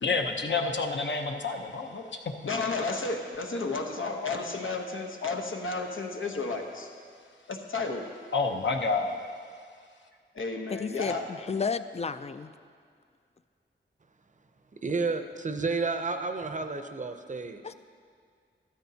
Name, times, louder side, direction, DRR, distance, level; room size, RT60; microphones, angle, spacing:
voice 1, 0.0-2.0 8.3-9.2, left 4 dB, 65° left, 3 dB, 0.9 m, -28 dB
voice 2, 2.4-6.9 7.5-8.0 10.3-11.3, left 3 dB, 90° left, 2 dB, 1.0 m, -32 dB
voice 3, 10.7-12.5 17.6-17.7, left 5 dB, 35° left, 12 dB, 0.3 m, -32 dB
voice 4, 14.8-17.7, right 4 dB, 40° right, 8 dB, 0.6 m, -31 dB
13.0 x 13.0 x 2.8 m, 2.1 s
wide cardioid pair, 95°, 20 cm